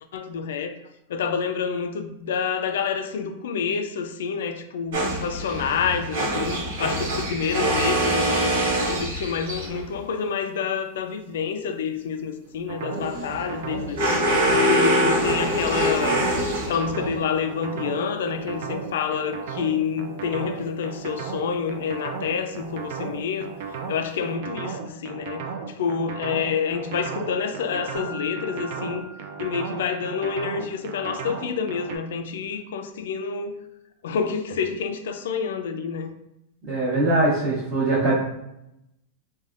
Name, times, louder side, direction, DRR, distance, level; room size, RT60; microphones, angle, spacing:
voice 1, 0.1-0.8 1.1-14.3 14.7-16.2 16.7-29.1 29.4-33.6 34.0-36.1, left 6 dB, 80° left, 0.3 m, -28 dB
sound 1, 4.9-9.9 12.9-17.1, right 1 dB, 75° right, 1.0 m, -24 dB
sound 2, 12.7-32.0, right 6 dB, 55° right, 0.4 m, -34 dB
Mallet percussion, 27.9-30.5, left 1 dB, 30° left, 0.6 m, -43 dB
voice 2, 36.7-38.1, right 2 dB, 30° right, 0.9 m, -21 dB
3.3 x 2.2 x 2.4 m
supercardioid pair, 160°, 0 cm